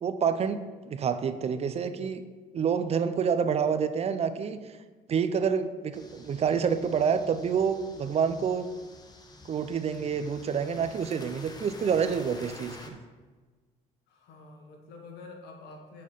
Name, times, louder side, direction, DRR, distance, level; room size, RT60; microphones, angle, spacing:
voice 1, 0.0-2.2 2.5-4.6 5.1-8.7 9.4-13.0, right 6 dB, 40° right, 11 dB, 0.5 m, -28 dB
sound 1, 5.9-12.9, left 2 dB, 25° left, 0.9 m, -49 dB
voice 2, 14.1-16.0, left 3 dB, 85° left, 3 dB, 1.3 m, -47 dB
7.4 x 4.3 x 5.3 m, 1.3 s
cardioid pair, 110°, 17 cm